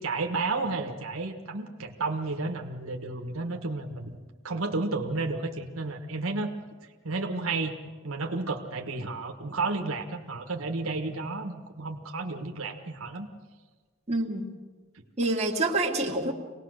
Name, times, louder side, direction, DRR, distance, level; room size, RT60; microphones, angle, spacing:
voice 1, 0.0-4.2 4.4-6.5 7.0-7.7 8.0-13.3, right 3 dB, 90° right, 4 dB, 1.4 m, -32 dB
voice 2, 14.1-14.5 15.2-16.3, right 2 dB, 30° right, -1 dB, 2.1 m, -27 dB
25.0 x 18.5 x 6.5 m, 1.4 s
head